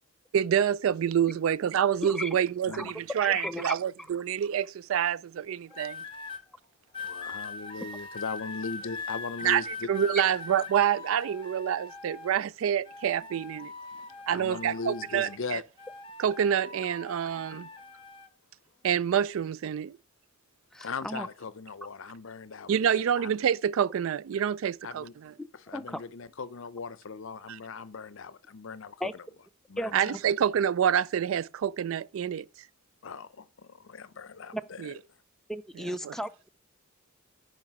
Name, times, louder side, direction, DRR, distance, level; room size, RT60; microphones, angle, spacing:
voice 1, 0.3-6.0 9.4-9.6 9.9-13.7 14.3-15.6 16.2-17.7 18.8-20.0 22.7-25.0 27.5-27.6 29.9-32.5 34.8-34.9 36.0-36.1, right 9 dB, 70° right, 0.3 m, -27 dB
voice 2, 3.2-3.7 20.7-21.3 25.4-25.5 25.7-26.0 29.0-29.1 29.8-30.2 34.5-34.6 35.5-36.5, equal, ahead, 0.4 m, -35 dB
sound 1, 5.7-6.4 6.9-12.5 12.8-15.5 15.8-18.3 19.1-19.4, left 4 dB, 25° left, 1.2 m, -42 dB
voice 3, 7.0-9.9 13.2-13.3 13.9-15.6 17.3-17.5 20.8-23.3 24.8-25.1 25.5-29.2 29.7-30.2 33.0-34.9, left 4 dB, 65° left, 0.6 m, -39 dB
9.7 x 5.1 x 4.8 m
head